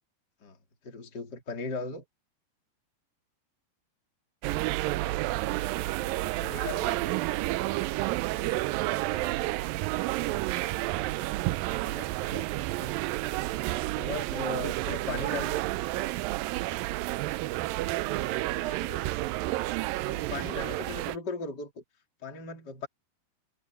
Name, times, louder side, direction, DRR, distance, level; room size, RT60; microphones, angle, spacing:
voice 1, 0.8-2.0 6.4-7.2 11.0-11.2 12.0-12.5 12.8-12.9 14.0-15.6 20.1-21.8 22.2-22.9, left 4 dB, 25° left, 3.7 m, -38 dB
sound 1, 4.4-21.2, right 18 dB, 85° right, 2.0 m, -30 dB
voice 2, 4.5-5.4 8.3-8.7 9.1-9.6 11.6-12.2 12.5-12.8 14.9-15.2 17.3-17.7 18.2-19.2 20.4-20.8, left 4 dB, 75° left, 5.9 m, -52 dB
omnidirectional pair, 4.6 m